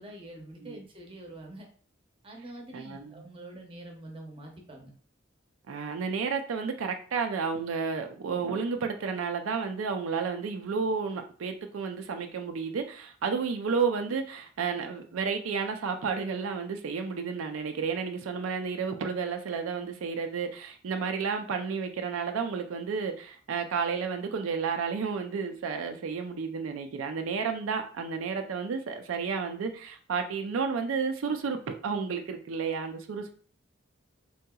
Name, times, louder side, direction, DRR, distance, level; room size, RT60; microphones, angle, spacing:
voice 1, 0.0-1.7 2.2-4.9, right 1 dB, 25° right, 0.7 m, -45 dB
voice 2, 2.7-3.2 5.7-33.3, right 5 dB, 90° right, 0.4 m, -31 dB
3.7 x 2.8 x 2.3 m
head